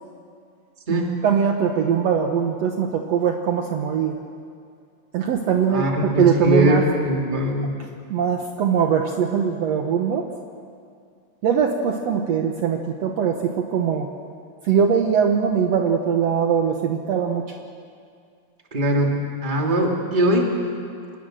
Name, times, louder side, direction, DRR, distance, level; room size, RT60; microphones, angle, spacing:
voice 1, 0.9-4.2 5.1-5.8 6.2-6.8 7.6-7.7 8.1-10.3 11.4-14.1 14.6-17.6, right 7 dB, 65° right, 3 dB, 2.0 m, -21 dB
voice 2, 5.7-7.7 18.7-20.5, equal, 15° right, 0 dB, 2.2 m, -21 dB
26.0 x 20.5 x 6.4 m, 2.3 s
omnidirectional pair, 3.5 m